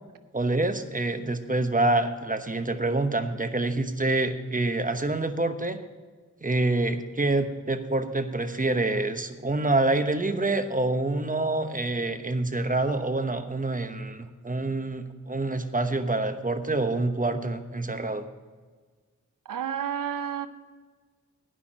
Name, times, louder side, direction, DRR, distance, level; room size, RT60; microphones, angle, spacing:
voice 1, 0.3-5.8 6.4-18.2, right 2 dB, 25° right, 9 dB, 1.1 m, -26 dB
voice 2, 19.4-20.5, right 8 dB, 85° right, 12 dB, 0.7 m, -30 dB
9.8 x 6.0 x 8.6 m, 1.4 s
cardioid pair, 40°, 32 cm